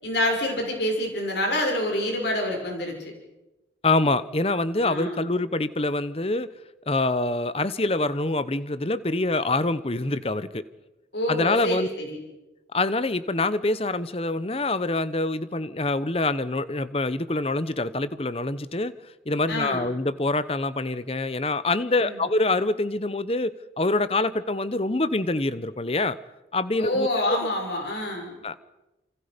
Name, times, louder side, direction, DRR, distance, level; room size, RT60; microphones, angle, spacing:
voice 1, 0.0-3.1 4.8-5.2 11.1-12.2 19.5-19.9 22.0-22.2 26.8-28.3, left 1 dB, 70° left, 1 dB, 6.3 m, -27 dB
voice 2, 3.8-6.5 6.9-10.6 11.3-11.9 12.7-19.0 19.3-26.2 26.5-27.5 28.4-28.5, left 2 dB, 30° left, 14 dB, 0.9 m, -25 dB
28.5 x 26.5 x 5.3 m, 1.0 s
head